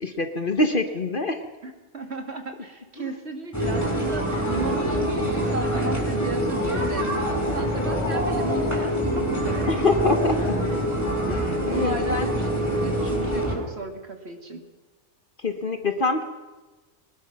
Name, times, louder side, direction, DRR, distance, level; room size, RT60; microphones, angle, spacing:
voice 1, 0.0-1.4 3.0-3.1 9.7-10.6 11.3-12.3 15.4-16.2, left 2 dB, 40° left, 7 dB, 1.3 m, -25 dB
voice 2, 1.6-9.7 10.6-10.8 11.7-14.6, right 3 dB, 50° right, 5 dB, 2.4 m, -35 dB
sound 1, 3.5-13.6, equal, 10° left, 5.7 m, -25 dB
22.5 x 20.0 x 5.9 m, 1.2 s
omnidirectional pair, 1.4 m